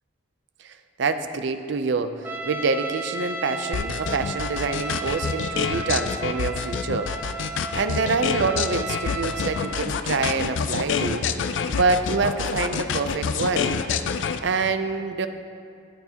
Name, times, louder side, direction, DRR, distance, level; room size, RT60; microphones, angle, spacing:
voice 1, 1.0-7.1 7.7-11.3 11.7-13.7 14.4-15.3, right 4 dB, 60° right, 9 dB, 0.5 m, -26 dB
Trumpet, 2.2-9.9, right 2 dB, 10° right, 0.4 m, -34 dB
sound 1, 3.7-14.4, left 6 dB, 65° left, 0.4 m, -27 dB
13.5 x 9.2 x 2.9 m, 2.4 s
head